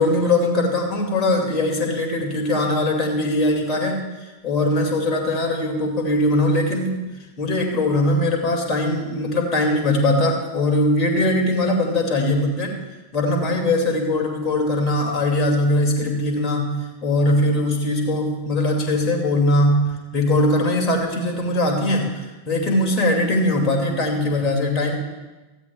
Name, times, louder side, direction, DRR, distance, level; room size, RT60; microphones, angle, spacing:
voice 1, 0.0-6.9 7.4-12.8 13.1-16.8 17.0-25.0, left 1 dB, 30° left, 1 dB, 2.3 m, -21 dB
16.0 x 14.0 x 2.3 m, 1.1 s
figure-of-eight pair, 90°, 0 cm